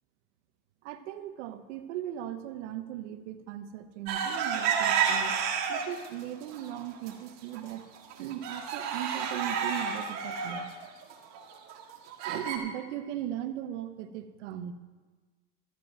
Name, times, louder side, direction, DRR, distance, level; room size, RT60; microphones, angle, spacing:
voice 1, 0.8-5.4 5.7-7.8 8.2-10.7 12.2-14.7, right 11 dB, 80° right, 10 dB, 1.0 m, -38 dB
sound 1, 4.1-6.1 6.5-7.1 7.5-7.6 7.9-12.6, right 7 dB, 45° right, 1.8 m, -30 dB
12.5 x 5.3 x 8.9 m, 1.4 s
supercardioid pair, 150°, 36 cm